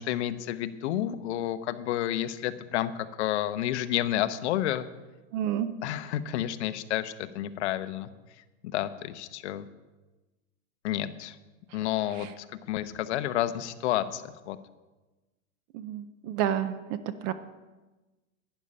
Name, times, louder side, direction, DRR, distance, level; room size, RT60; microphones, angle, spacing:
voice 1, 0.0-2.9 3.2-4.9 5.8-8.1 8.7-9.7 10.8-11.3 11.7-14.6, left 12 dB, 55° left, 12 dB, 0.9 m, -30 dB
voice 2, 5.3-5.7 12.2-12.3 15.7-17.0 17.2-17.3, right 10 dB, 30° right, 12 dB, 0.5 m, -30 dB
12.0 x 10.0 x 5.5 m, 1.1 s
supercardioid pair, 145°, 40 cm